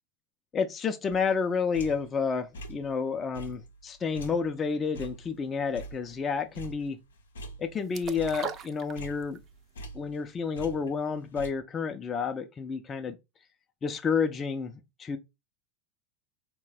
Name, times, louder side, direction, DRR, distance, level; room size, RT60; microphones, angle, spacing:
voice 1, 0.5-7.0 7.6-9.4 9.9-13.2 13.8-14.7 15.0-15.2, left 5 dB, 30° left, 0.5 m, -30 dB
sound 1, 1.1-2.2 2.5-3.0 3.3-6.3 6.5-7.9 8.1-10.3 10.5-11.5, right 2 dB, 90° left, 0.7 m, -44 dB
sound 2, 7.9-9.5 9.8-9.9, right 7 dB, 40° right, 0.5 m, -38 dB
3.9 x 2.1 x 4.0 m
hypercardioid pair, 95°, 0 cm